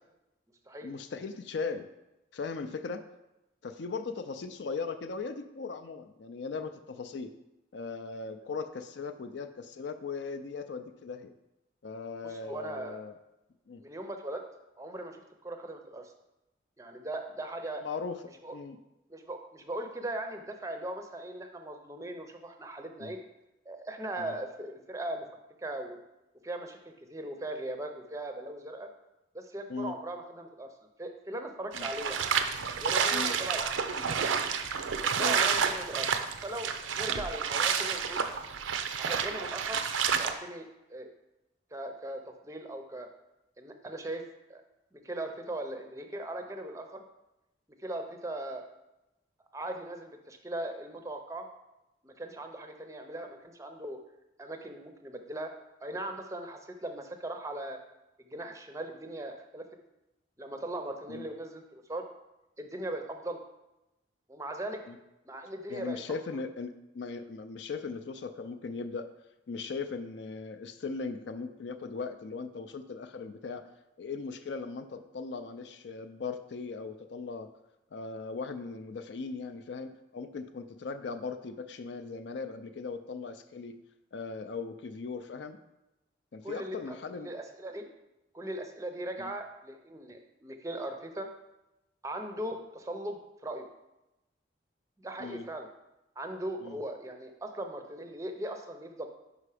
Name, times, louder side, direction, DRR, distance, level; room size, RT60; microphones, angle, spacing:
voice 1, 0.8-1.9 2.3-3.1 3.6-7.3 7.7-11.3 11.8-13.1 13.7-13.8 17.8-18.2 18.5-18.8 23.0-23.1 24.2-24.3 29.7-29.9 31.7-31.9 33.1-33.4 35.2-35.4 37.2-37.3 61.1-61.3 64.9-65.0 65.7-69.1 69.5-73.6 74.0-77.5 77.9-83.8 84.1-85.6 86.3-87.3 89.2-89.3 95.2-95.5 96.6-96.8, left 4 dB, 65° left, 8 dB, 0.4 m, -38 dB
voice 2, 12.2-13.0 13.8-14.4 14.8-16.1 16.8-17.8 18.4-18.6 19.1-23.2 23.7-25.3 25.6-26.0 26.4-28.9 29.3-30.7 31.0-32.3 32.8-34.3 35.2-36.1 36.4-38.3 39.0-41.1 41.7-43.1 43.6-44.2 44.5-44.6 44.9-47.0 47.8-48.6 49.5-51.5 52.0-54.0 54.4-55.5 55.8-57.8 58.2-59.6 60.4-62.0 62.6-63.4 64.3-64.8 65.3-66.0 66.3-66.4 86.4-87.9 88.3-91.3 92.0-93.7 95.0-95.7 96.2-99.1, right 1 dB, 15° right, 5 dB, 0.5 m, -39 dB
sound 1, 31.7-40.3, right 6 dB, 85° right, 0.5 m, -30 dB
5.6 x 5.0 x 4.9 m, 0.96 s
head